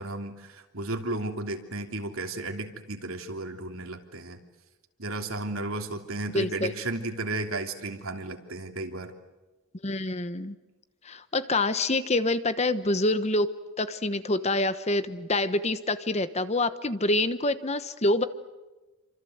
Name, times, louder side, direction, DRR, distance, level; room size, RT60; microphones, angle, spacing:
voice 1, 0.0-4.4 5.0-9.1, right 2 dB, 70° right, 4 dB, 3.1 m, -34 dB
voice 2, 6.3-6.7 9.8-10.5 11.0-13.5 13.8-18.2, left 2 dB, 30° left, 12 dB, 1.1 m, -26 dB
28.5 x 26.0 x 8.0 m, 1.1 s
head